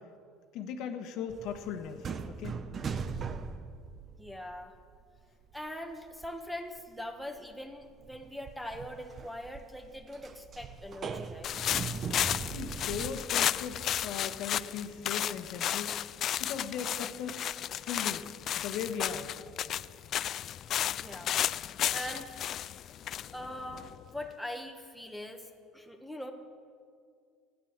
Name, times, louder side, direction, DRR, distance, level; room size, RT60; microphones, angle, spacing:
voice 1, 0.5-2.5 12.5-16.0 16.4-17.5 17.8-18.3 18.6-19.3, left 7 dB, 65° left, 6 dB, 1.2 m, -38 dB
sound 1, 1.3-5.1 5.4-6.5 6.7-6.8 7.4-13.1, right 5 dB, 35° right, 0.8 m, -40 dB
voice 2, 4.2-4.7 5.5-11.6 21.0-21.4 21.9-22.3 22.8-23.0 23.3-26.3, left 1 dB, ahead, 3 dB, 1.3 m, -42 dB
sound 2, 11.4-24.2, left 11 dB, 50° left, 0.3 m, -33 dB
13.5 x 9.4 x 7.4 m, 2.2 s
supercardioid pair, 105°, 0 cm